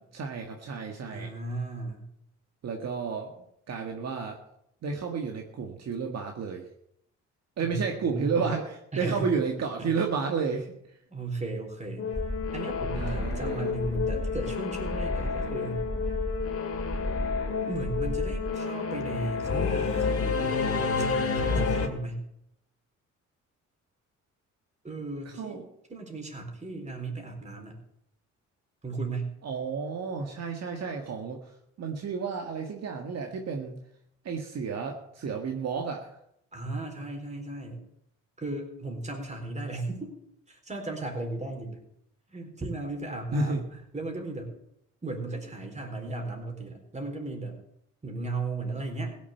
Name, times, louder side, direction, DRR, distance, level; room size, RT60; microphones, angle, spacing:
voice 1, 0.0-1.3 2.6-4.4 4.8-6.6 7.6-10.7 12.9-13.7 25.4-25.6 29.4-31.4 31.8-33.8 34.2-36.1 43.3-43.6, right 5 dB, 60° right, 3 dB, 1.8 m, -31 dB
voice 2, 1.1-2.1 7.6-8.4 8.9-9.3 9.8-9.9 11.1-12.1 12.5-15.9 17.7-20.6 21.0-21.1 21.3-22.3 24.8-25.6 25.9-27.8 28.8-29.4 36.5-37.8 38.4-40.2 40.5-41.8 42.3-44.5 45.0-47.6 48.0-49.2, right 2 dB, 25° right, 2 dB, 4.2 m, -35 dB
Singing / Musical instrument, 12.0-21.9, left 5 dB, 50° left, 2.3 m, -30 dB
sound 1, 12.1-18.6, left 1 dB, 10° left, 0.7 m, -34 dB
16.5 x 7.3 x 8.3 m, 0.76 s
cardioid pair, 90°, 30 cm